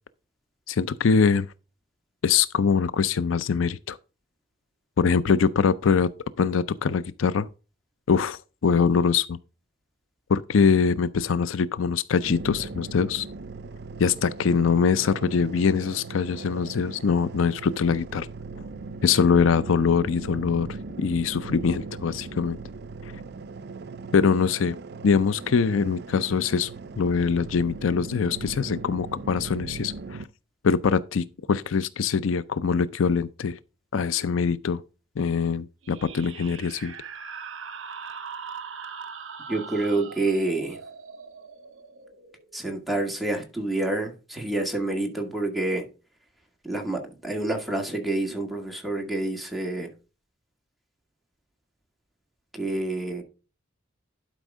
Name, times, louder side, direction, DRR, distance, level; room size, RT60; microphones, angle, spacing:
voice 1, 0.7-1.5 2.2-4.0 5.0-6.1 6.4-7.5 8.1-9.4 10.3-13.3 14.0-18.3 19.0-20.7 21.0-22.6 23.0-23.1 24.1-24.8 25.0-26.7 27.0-30.2 30.6-33.6 33.9-34.8 35.2-36.9, left 5 dB, 80° left, 0.5 m, -23 dB
sound 1, 12.2-30.2, right 4 dB, 55° right, 0.5 m, -39 dB
sound 2, 35.8-43.1, right 6 dB, 75° right, 1.0 m, -41 dB
voice 2, 39.5-40.8 42.5-45.9 46.6-49.9 52.5-53.2, right 2 dB, ahead, 1.9 m, -28 dB
11.5 x 5.2 x 3.6 m
head